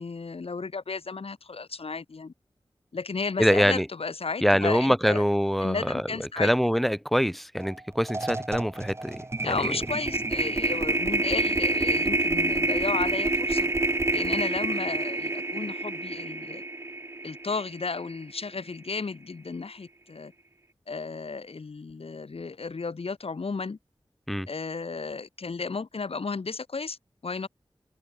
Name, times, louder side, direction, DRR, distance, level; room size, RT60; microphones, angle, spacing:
voice 1, 0.0-2.3 2.9-5.2 5.6-6.5 9.4-13.7 14.1-16.6 17.2-20.3 20.9-23.8 24.5-27.0 27.2-27.5, left 4 dB, 85° left, 5.4 m, -33 dB
voice 2, 3.4-3.9 4.4-6.0 6.4-9.7 24.3-24.5, equal, ahead, 2.3 m, -24 dB
sound 1, 7.6-7.7 8.0-18.3, right 2 dB, 25° right, 0.5 m, -28 dB
wide cardioid pair, 45°, 10 cm